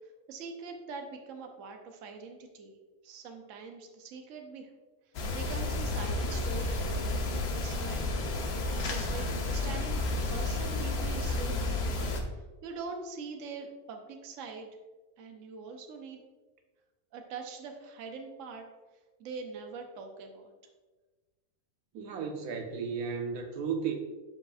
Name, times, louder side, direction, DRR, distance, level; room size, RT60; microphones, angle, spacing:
voice 1, 0.3-2.8 3.0-4.7 5.3-8.1 8.6-10.0 10.3-14.7 15.2-16.2 17.1-18.6 19.2-20.5, right 4 dB, 60° right, 4 dB, 1.1 m, -43 dB
sound 1, 5.1-12.2, left 2 dB, 75° left, 1.5 m, -31 dB
voice 2, 21.9-23.9, right 6 dB, 80° right, 4 dB, 1.2 m, -34 dB
11.0 x 5.1 x 2.4 m, 1.3 s
omnidirectional pair, 1.6 m